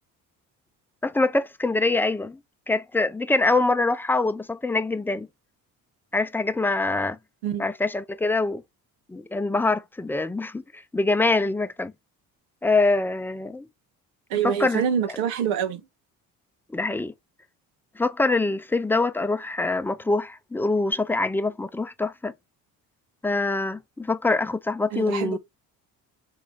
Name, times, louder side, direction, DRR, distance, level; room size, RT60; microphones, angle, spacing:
voice 1, 1.0-2.4 2.7-5.3 6.1-7.2 7.6-8.6 9.1-11.9 12.6-13.7 14.4-14.8 16.7-17.1 18.0-22.3 23.2-25.4, left 3 dB, 5° left, 0.4 m, -24 dB
voice 2, 14.3-15.8 24.9-25.4, right 8 dB, 90° right, 0.9 m, -26 dB
3.9 x 2.7 x 4.7 m
supercardioid pair, 65°, 42 cm